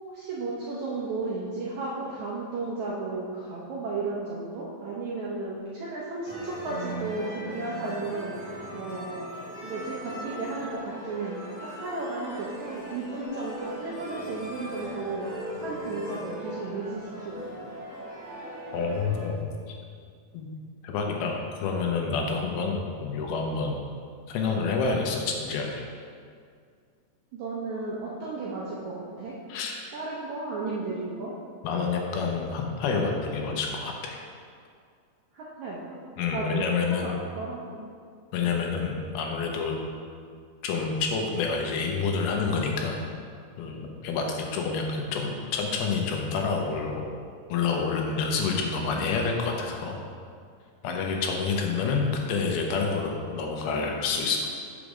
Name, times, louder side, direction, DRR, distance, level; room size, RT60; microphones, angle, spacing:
voice 1, 0.1-9.3 9.6-17.7 27.3-29.4 29.9-31.3 35.3-36.0 36.3-37.8 38.4-38.5 51.8-51.9, right 3 dB, 75° right, -6 dB, 1.7 m, -34 dB
sound 1, 6.2-19.3, equal, 65° left, 0.8 m, -39 dB
voice 2, 18.7-19.4 19.7-19.8 20.3-20.5 20.8-23.8 24.3-25.8 29.5-29.9 31.6-34.2 36.2-37.2 38.3-39.8 40.6-43.0 43.6-43.8 44.0-47.1 47.5-50.0 50.8-54.5, left 4 dB, 80° left, 1 dB, 2.8 m, -28 dB
6.9 x 5.1 x 6.1 m, 2.2 s
omnidirectional pair, 4.5 m